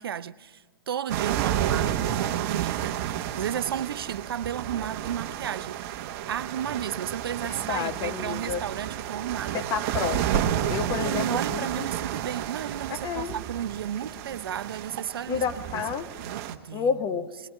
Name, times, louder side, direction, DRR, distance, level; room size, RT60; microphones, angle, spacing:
voice 1, 0.0-5.7 6.3-9.7 11.0-15.4 16.2-16.9, right 9 dB, 70° right, 0.6 m, -33 dB
sound 1, 1.1-16.6, right 11 dB, 40° right, 1.1 m, -31 dB
voice 2, 7.4-8.6 9.5-11.9 12.9-13.4 15.3-16.1 16.7-17.3, left 7 dB, 25° left, 0.9 m, -30 dB
20.5 x 18.0 x 8.2 m
hypercardioid pair, 135°, 13 cm